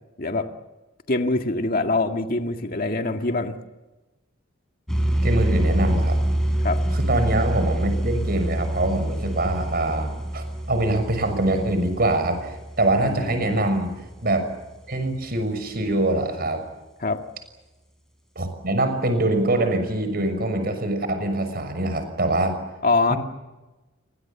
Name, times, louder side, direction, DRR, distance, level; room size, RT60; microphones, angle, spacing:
voice 1, 0.2-0.5 1.1-3.6 6.6-6.8 13.0-13.7 17.0-17.2 22.8-23.1, left 3 dB, 45° left, 4 dB, 1.9 m, -24 dB
sound 1, 4.9-14.4, right 1 dB, 5° left, 6.5 m, -26 dB
voice 2, 5.2-6.2 6.9-13.9 14.2-14.5 14.9-16.6 18.3-22.6 23.1-23.2, right 1 dB, 50° right, 8 dB, 6.3 m, -24 dB
29.5 x 24.5 x 7.2 m, 1.1 s
head